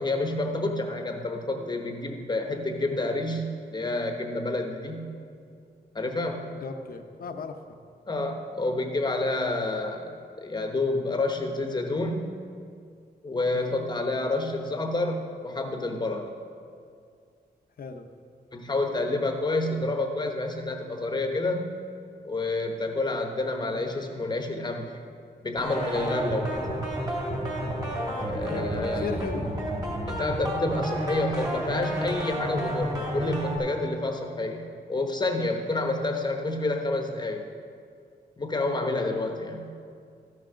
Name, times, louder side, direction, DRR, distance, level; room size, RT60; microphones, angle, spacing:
voice 1, 0.0-5.1 5.9-6.4 8.1-12.3 13.2-16.3 18.5-21.7 22.2-24.9 25.4-26.7 28.2-29.1 30.1-37.4 38.4-39.7, left 2 dB, 25° left, 4 dB, 0.9 m, -29 dB
voice 2, 6.6-7.8 13.5-13.9 17.8-18.1 28.1-29.5, left 4 dB, 55° left, 6 dB, 0.7 m, -36 dB
sound 1, 25.6-33.6, right 1 dB, 20° right, 2.4 m, -30 dB
13.5 x 6.3 x 5.6 m, 2.3 s
wide cardioid pair, 150°, 18 cm